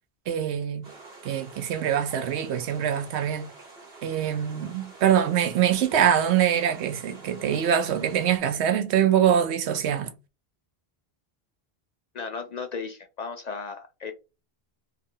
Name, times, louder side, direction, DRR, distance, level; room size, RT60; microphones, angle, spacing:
voice 1, 0.3-0.9 1.2-3.5 4.0-10.1, right 9 dB, 90° right, 0.9 m, -24 dB
sound 1, 0.8-8.4, right 2 dB, 70° right, 1.7 m, -48 dB
voice 2, 12.1-14.1, left 5 dB, 55° left, 0.5 m, -35 dB
3.4 x 2.1 x 3.6 m
omnidirectional pair, 1.1 m